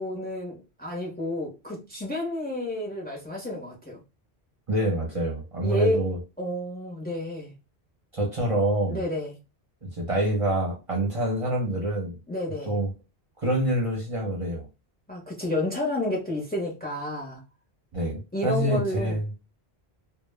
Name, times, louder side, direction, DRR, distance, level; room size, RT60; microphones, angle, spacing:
voice 1, 0.0-4.0 5.6-6.1 6.4-7.5 8.9-9.4 12.3-12.8 15.1-17.4 18.3-19.4, left 1 dB, 10° left, 0.5 m, -30 dB
voice 2, 4.7-6.2 8.1-9.0 9.8-12.1 12.7-12.9 13.4-14.7 17.9-19.3, right 1 dB, 35° right, 0.6 m, -26 dB
2.1 x 2.1 x 3.2 m
omnidirectional pair, 1.1 m